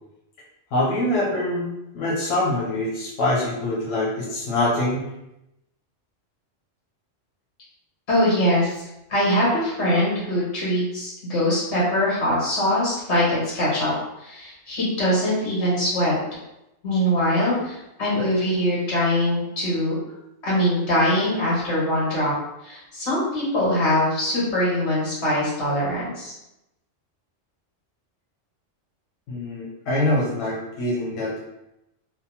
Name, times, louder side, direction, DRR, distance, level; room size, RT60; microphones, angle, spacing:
voice 1, 0.7-5.0 29.3-31.4, left 1 dB, 90° left, -5 dB, 1.0 m, -24 dB
voice 2, 8.1-8.8 9.1-13.9 14.2-16.1 16.8-20.0 20.4-22.3 22.6-26.3, left 1 dB, 60° left, -7 dB, 1.4 m, -22 dB
2.8 x 2.0 x 2.7 m, 0.89 s
omnidirectional pair, 1.3 m